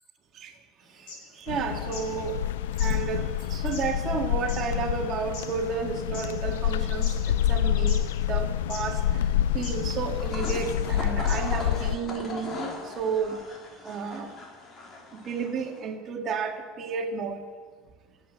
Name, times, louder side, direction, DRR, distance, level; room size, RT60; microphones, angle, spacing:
sound 1, 1.0-2.1 2.4-2.5 2.8-6.3 6.8-7.6 7.9-8.4 8.7-8.8 9.6-9.9 10.4-10.6 10.9-11.0 11.3-11.6, left 4 dB, 65° left, 5.4 m, -42 dB
voice 1, 1.4-2.4 2.8-9.3 9.5-13.4 13.8-14.3 15.1-17.4, right 5 dB, 45° right, 4 dB, 1.8 m, -32 dB
sound 2, 1.5-12.0, left 11 dB, 90° left, 0.4 m, -27 dB
sound 3, 10.1-15.9, left 3 dB, 35° left, 3.3 m, -39 dB
13.0 x 8.3 x 9.8 m, 1.5 s
supercardioid pair, 105°, 0 cm